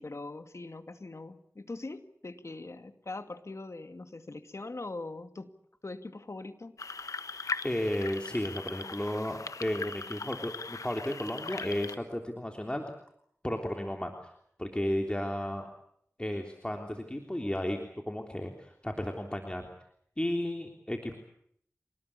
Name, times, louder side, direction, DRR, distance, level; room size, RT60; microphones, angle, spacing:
voice 1, 0.0-5.5 5.8-6.8, left 2 dB, 60° left, 9 dB, 2.3 m, -42 dB
sound 1, 6.8-12.0, left 4 dB, 85° left, 1.1 m, -39 dB
voice 2, 7.6-12.8 13.4-14.3 14.6-15.7 16.2-17.8 18.1-19.7 20.2-21.1, left 1 dB, 20° left, 3 dB, 3.4 m, -33 dB
26.5 x 19.5 x 8.6 m, 0.68 s
cardioid pair, 40°, 6 cm